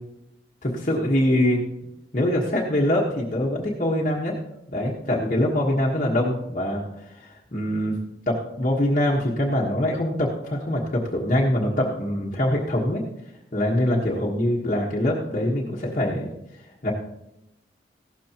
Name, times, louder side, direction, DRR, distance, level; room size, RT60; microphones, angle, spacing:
voice 1, 0.6-1.6 2.1-4.3 4.7-8.0 8.3-13.0 13.5-16.3 16.8-16.9, left 1 dB, 40° left, -4 dB, 1.4 m, -24 dB
15.5 x 12.5 x 3.0 m, 0.87 s
head